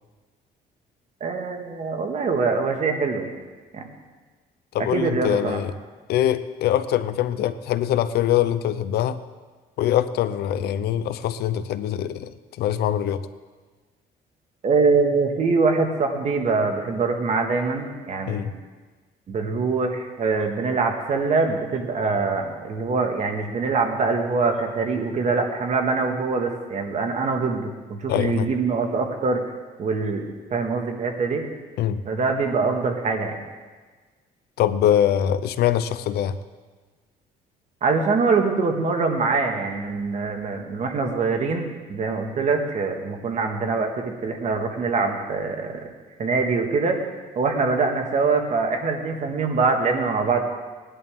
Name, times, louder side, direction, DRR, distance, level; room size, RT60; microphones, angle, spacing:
voice 1, 1.2-3.3 3.7-3.9 4.8-5.6 14.6-18.5 19.3-29.4 29.8-31.4 32.0-33.4 37.8-45.9 46.2-47.0 47.3-50.4, right 4 dB, 45° right, 3 dB, 1.9 m, -24 dB
voice 2, 4.7-5.7 6.1-9.2 9.8-12.3 12.6-13.3 18.3-18.5 28.1-28.5 31.8-32.0 34.6-36.4, left 11 dB, 70° left, 13 dB, 0.7 m, -23 dB
19.5 x 11.0 x 3.7 m, 1.4 s
cardioid pair, 110°, 17 cm